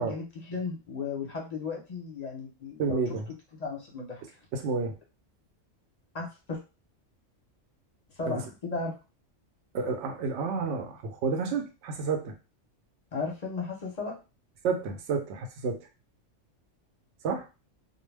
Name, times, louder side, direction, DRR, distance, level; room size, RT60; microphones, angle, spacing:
voice 1, 0.0-3.0 3.6-4.2 6.1-6.6 8.2-8.9 13.1-14.1, left 4 dB, 40° left, -1 dB, 0.6 m, -35 dB
voice 2, 2.8-3.3 4.5-4.9 8.2-8.4 9.7-12.3 14.6-15.9 17.2-17.5, right 5 dB, 65° right, 4 dB, 0.9 m, -30 dB
2.2 x 2.2 x 3.2 m, 0.30 s
omnidirectional pair, 1.3 m